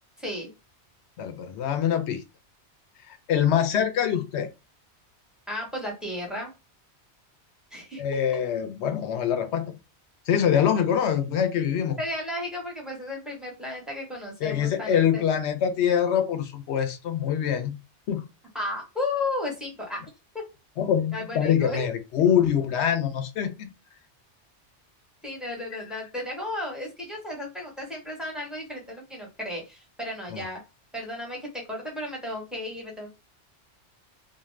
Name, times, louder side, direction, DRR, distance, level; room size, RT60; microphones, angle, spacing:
voice 1, 0.2-0.5 5.5-6.5 7.7-8.0 12.0-15.2 18.5-20.0 21.1-21.8 25.2-30.6 30.9-33.1, left 2 dB, ahead, 1.0 m, -34 dB
voice 2, 1.2-2.2 3.1-4.5 8.0-9.7 10.3-12.0 14.4-17.8 18.1-18.2 20.8-23.7 30.3-30.4, left 9 dB, 75° left, 0.9 m, -24 dB
2.5 x 2.2 x 3.2 m
omnidirectional pair, 1.2 m